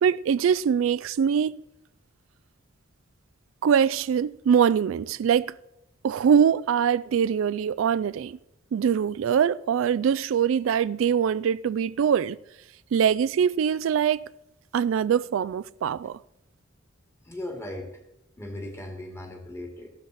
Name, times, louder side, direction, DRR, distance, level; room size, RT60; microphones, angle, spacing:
voice 1, 0.0-1.6 3.6-5.5 6.0-8.4 8.7-12.4 12.9-14.2 14.7-16.2, right 7 dB, 70° right, 0.3 m, -23 dB
voice 2, 17.2-17.9 18.4-19.9, left 1 dB, 15° left, 2.4 m, -37 dB
14.0 x 12.5 x 4.1 m
head